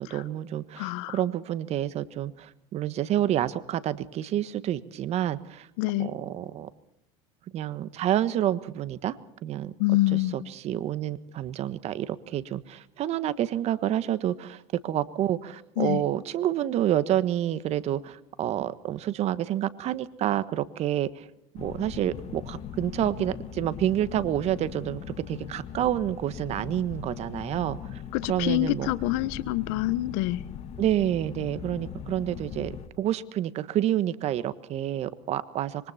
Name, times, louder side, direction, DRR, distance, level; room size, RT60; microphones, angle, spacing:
voice 1, 0.0-5.7 6.0-6.7 7.5-9.1 9.4-9.7 10.1-21.3 21.5-25.0 25.3-28.0 28.3-28.9 30.8-35.9, right 12 dB, 45° right, 15 dB, 1.4 m, -28 dB
voice 2, 0.8-1.1 5.8-6.1 9.8-10.3 15.8-16.0 28.1-30.4, left 17 dB, 70° left, 16 dB, 1.3 m, -26 dB
sound 1, 21.6-32.9, left 9 dB, 45° left, 1.8 m, -40 dB
26.0 x 23.0 x 4.3 m, 0.76 s
supercardioid pair, 105°, 15 cm